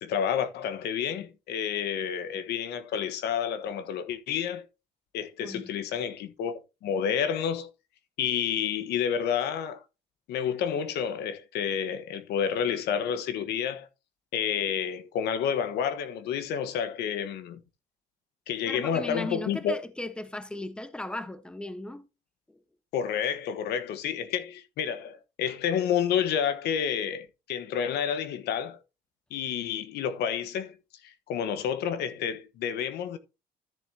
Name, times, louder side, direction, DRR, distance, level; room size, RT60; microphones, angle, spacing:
voice 1, 0.0-4.7 5.1-7.7 8.2-9.8 10.3-13.9 14.3-17.6 18.5-19.7 22.9-28.8 29.3-30.8 31.0-33.2, left 8 dB, 75° left, 1.2 m, -29 dB
voice 2, 5.4-5.7 18.7-22.1 22.5-22.6, left 1 dB, 5° left, 1.1 m, -37 dB
13.0 x 7.1 x 2.8 m
cardioid pair, 110°, 17 cm